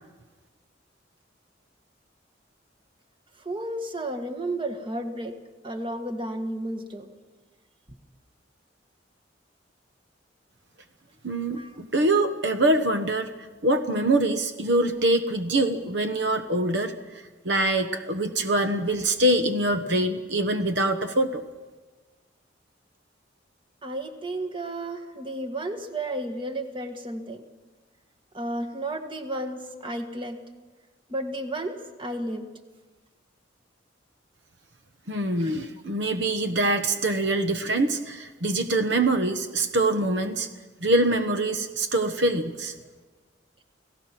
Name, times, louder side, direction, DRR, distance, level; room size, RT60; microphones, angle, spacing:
voice 1, 3.4-5.3 5.6-7.1 11.5-11.8 23.8-27.4 28.3-30.4 31.1-32.4 35.4-35.5, right 1 dB, 25° right, 6 dB, 1.7 m, -32 dB
voice 2, 11.2-13.3 13.6-21.4 35.1-40.5 40.8-42.7, right 1 dB, 65° right, 7 dB, 1.2 m, -24 dB
30.0 x 17.0 x 6.0 m, 1.3 s
head